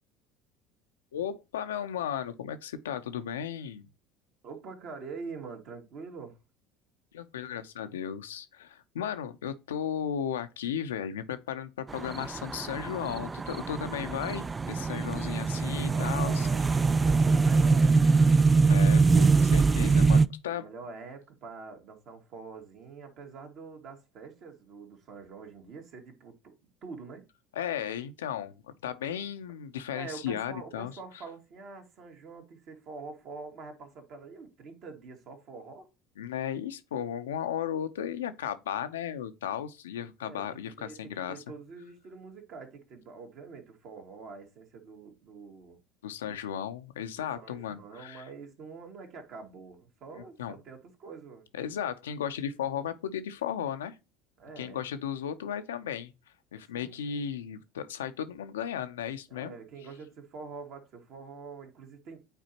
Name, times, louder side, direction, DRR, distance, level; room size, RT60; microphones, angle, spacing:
voice 1, 1.1-3.9 7.1-16.5 18.6-20.7 27.6-30.9 36.2-41.4 46.0-48.3 50.2-50.6 51.5-54.0 54.6-56.1 56.5-59.5, left 9 dB, 80° left, 0.6 m, -35 dB
voice 2, 4.4-6.4 15.8-18.6 20.5-26.5 26.8-27.3 29.9-35.9 40.2-45.8 47.1-51.5 54.4-54.8 56.7-57.3 59.3-62.2, right 4 dB, 55° right, 2.0 m, -45 dB
sound 1, 11.9-20.3, right 4 dB, 20° right, 0.3 m, -23 dB
9.0 x 4.1 x 2.8 m
hypercardioid pair, 70°, 0 cm